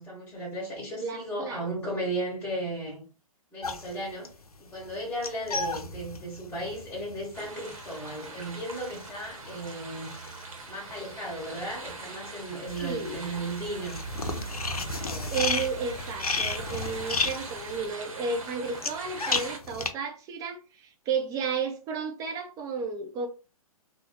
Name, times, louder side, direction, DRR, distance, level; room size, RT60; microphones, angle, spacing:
voice 1, 0.0-3.0 3.5-4.3 4.6-10.2 10.7-14.0 14.7-15.4, right 1 dB, 10° left, 1.0 m, -35 dB
voice 2, 1.0-1.7 12.8-13.2 15.3-23.3, right 5 dB, 20° right, 0.6 m, -33 dB
sound 1, 3.6-11.1 11.4-19.9, left 3 dB, 85° left, 0.5 m, -34 dB
sound 2, 7.3-19.6, right 3 dB, 65° right, 0.9 m, -43 dB
3.0 x 2.0 x 2.8 m
figure-of-eight pair, 120°, 19 cm